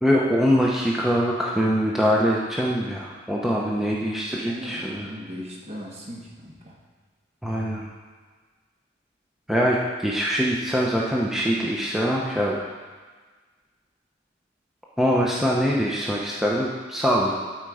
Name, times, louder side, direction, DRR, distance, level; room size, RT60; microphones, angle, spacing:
voice 1, 0.0-5.1 7.4-7.9 9.5-9.8 10.0-12.6 15.0-17.3, equal, ahead, -4 dB, 0.6 m, -23 dB
voice 2, 4.4-6.8, equal, 35° right, -1 dB, 1.3 m, -38 dB
12.0 x 4.4 x 4.8 m, 1.5 s
head